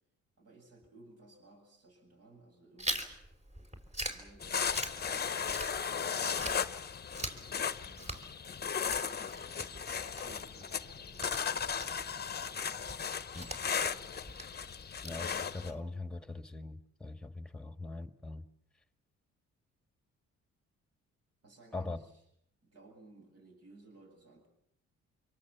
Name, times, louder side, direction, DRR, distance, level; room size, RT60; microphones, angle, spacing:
voice 1, 0.4-3.3 4.1-6.6 7.1-8.3 9.2-12.0 21.4-22.1 22.6-24.5, right 2 dB, 55° right, 7.9 m, -59 dB
Chewing mastication, 2.8-6.0 6.3-15.8, right 1 dB, 20° right, 4.3 m, -43 dB
sound 1, 4.4-15.7, left 6 dB, 35° left, 1.0 m, -36 dB
voice 2, 15.0-18.4 21.7-22.0, left 2 dB, 5° left, 1.8 m, -42 dB
26.0 x 23.0 x 7.2 m
cardioid pair, 90°, 30 cm